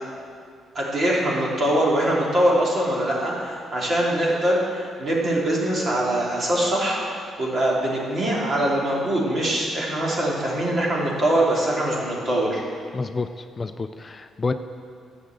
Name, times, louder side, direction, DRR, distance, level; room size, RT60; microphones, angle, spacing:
voice 1, 0.7-12.6, right 1 dB, 45° right, -4 dB, 3.2 m, -23 dB
voice 2, 12.9-13.3 13.6-14.5, left 4 dB, 30° left, 9 dB, 0.4 m, -28 dB
11.5 x 6.5 x 8.0 m, 2.2 s
cardioid pair, 90°, 0 cm